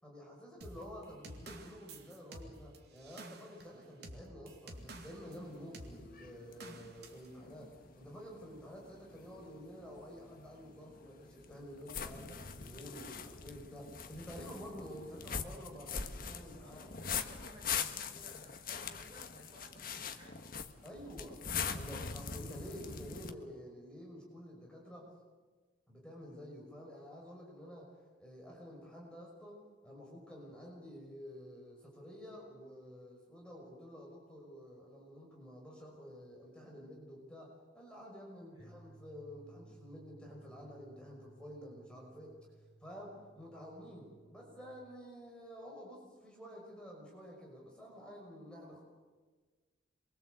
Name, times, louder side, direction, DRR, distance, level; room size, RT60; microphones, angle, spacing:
voice 1, 0.0-16.9 20.8-21.4 21.7-25.1 25.9-27.9 28.2-37.5 37.7-42.3 42.8-48.8, equal, 5° left, -2 dB, 5.6 m, -50 dB
sound 1, 0.6-5.4 5.7-6.0 6.6-7.3, right 2 dB, 55° right, 3.1 m, -50 dB
sound 2, 4.7-23.3, left 6 dB, 45° left, 1.4 m, -43 dB
voice 2, 15.2-20.4 38.5-38.8, equal, 20° right, -1 dB, 6.2 m, -58 dB
sound 3, 38.6-44.8, right 2 dB, 25° left, 5.1 m, -60 dB
27.5 x 23.0 x 8.2 m, 1.4 s
head